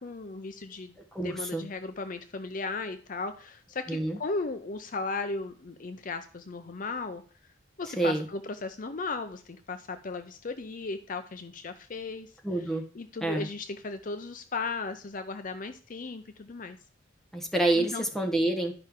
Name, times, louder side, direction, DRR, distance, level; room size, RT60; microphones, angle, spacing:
voice 1, 0.0-0.9 1.2-7.2 7.8-12.3 12.9-16.8 17.8-18.0, left 3 dB, 45° left, 9 dB, 0.5 m, -36 dB
voice 2, 1.1-1.6 3.9-4.2 8.0-8.3 12.4-12.8 13.2-13.5 17.3-18.7, right 2 dB, ahead, 2 dB, 1.3 m, -27 dB
11.5 x 5.5 x 3.6 m, 0.41 s
head